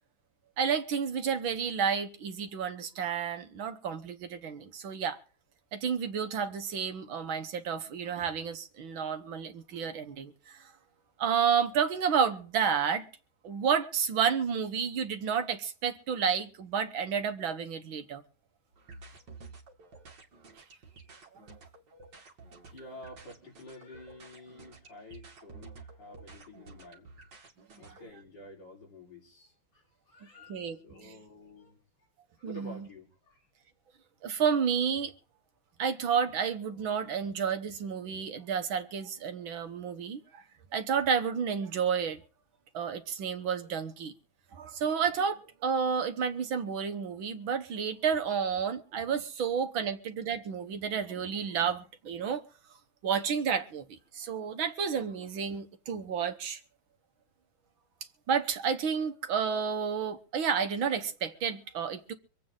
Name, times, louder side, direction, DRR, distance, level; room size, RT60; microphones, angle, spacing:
voice 1, 0.6-5.2 5.7-10.7 11.2-13.1 13.4-18.2 30.5-30.8 32.4-32.8 34.2-35.1 35.8-40.4 40.7-42.2 42.7-44.1 44.5-52.4 53.0-53.9 54.1-56.6 58.3-62.1, right 7 dB, 85° right, 2.0 m, -31 dB
sound 1, 18.7-28.0, right 4 dB, 60° right, 2.9 m, -51 dB
voice 2, 22.7-27.1 27.7-31.8 32.4-33.5, left 1 dB, 60° left, 5.0 m, -50 dB
25.5 x 8.6 x 3.8 m
omnidirectional pair, 2.1 m